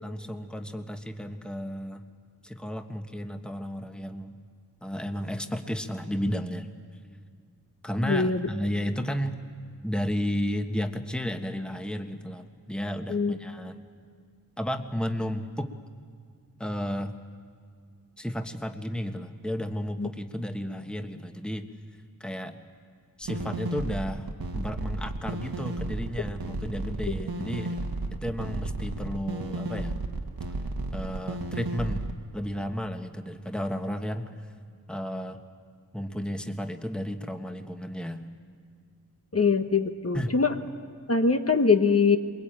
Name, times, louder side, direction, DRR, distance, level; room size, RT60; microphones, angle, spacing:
voice 1, 0.0-2.0 2.4-4.4 4.8-6.7 7.8-9.4 9.8-13.8 14.6-15.7 16.6-17.1 18.2-21.7 22.2-22.6 23.2-24.3 24.5-27.8 28.1-30.0 30.9-32.0 32.3-34.5 34.9-35.4 35.9-38.2 40.1-40.3, equal, 5° left, 6 dB, 1.3 m, -33 dB
voice 2, 8.0-8.4 13.1-13.3 20.0-20.1 39.3-40.5 41.1-42.2, left 4 dB, 40° left, 6 dB, 1.1 m, -22 dB
sound 1, 23.2-32.1, right 2 dB, 75° right, 1.4 m, -33 dB
22.5 x 22.0 x 8.9 m, 2.1 s
wide cardioid pair, 55°, 36 cm